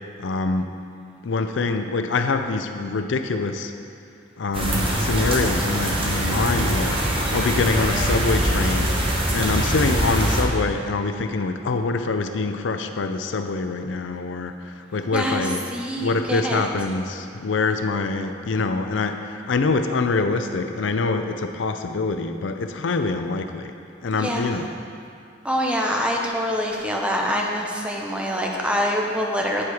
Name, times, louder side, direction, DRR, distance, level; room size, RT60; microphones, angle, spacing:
voice 1, 0.2-0.8 1.2-3.7 4.4-9.0 9.3-15.7 16.0-23.7 24.0-24.7, left 3 dB, 75° left, 7 dB, 0.5 m, -25 dB
sound 1, 4.5-10.4, right 1 dB, 30° right, 1.0 m, -23 dB
voice 2, 15.1-16.7 24.1-24.6 25.4-29.6, equal, 5° right, -1 dB, 0.7 m, -25 dB
8.8 x 4.6 x 4.7 m, 2.4 s
head